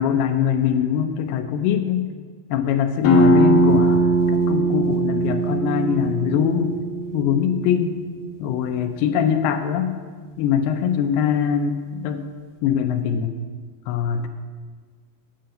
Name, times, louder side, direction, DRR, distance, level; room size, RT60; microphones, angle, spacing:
voice 1, 0.0-2.1 2.5-6.8 7.1-8.0 8.4-10.0 10.4-12.2 12.6-13.3 13.9-14.3, left 8 dB, 85° left, 8 dB, 2.6 m, -22 dB
sound 1, 3.0-8.4, right 2 dB, 65° left, 2.6 m, -20 dB
9.2 x 5.5 x 7.6 m, 1.5 s
omnidirectional pair, 4.7 m